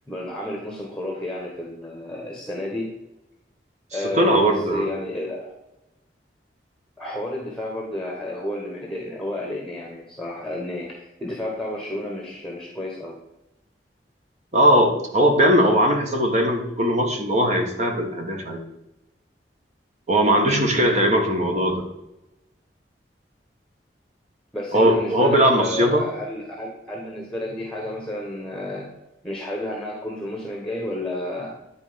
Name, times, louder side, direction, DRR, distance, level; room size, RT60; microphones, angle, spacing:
voice 1, 0.1-2.9 3.9-5.6 7.0-13.2 20.8-21.1 24.5-28.9 29.2-31.6, left 1 dB, 5° left, -1 dB, 1.2 m, -31 dB
voice 2, 4.1-4.9 14.5-18.6 20.1-21.8 24.7-26.0, equal, 40° right, 2 dB, 1.5 m, -19 dB
10.0 x 4.3 x 5.1 m, 0.93 s
head